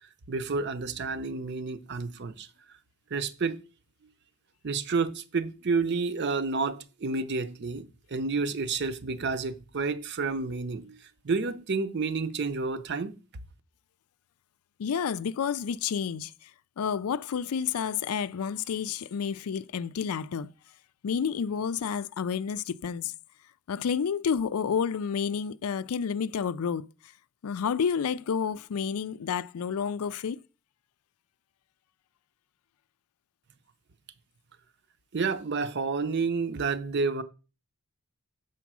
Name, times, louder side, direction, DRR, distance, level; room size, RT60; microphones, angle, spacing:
voice 1, 0.3-2.5 3.1-3.6 4.6-11.0 11.2-13.2 35.1-37.2, right 4 dB, 50° right, 0.6 m, -30 dB
voice 2, 14.8-16.3 16.8-20.5 21.0-23.1 23.7-26.8 27.4-30.4, left 7 dB, 85° left, 0.4 m, -30 dB
7.1 x 4.5 x 6.0 m
head